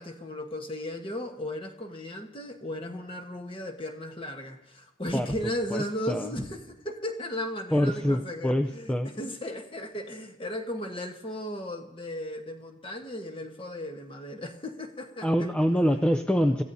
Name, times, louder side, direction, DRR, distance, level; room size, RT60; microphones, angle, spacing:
voice 1, 0.0-15.5, left 1 dB, 30° left, 4 dB, 1.2 m, -36 dB
voice 2, 5.7-6.3 7.7-9.1 15.2-16.6, equal, 5° left, 6 dB, 0.4 m, -25 dB
26.5 x 14.5 x 2.7 m, 0.92 s
head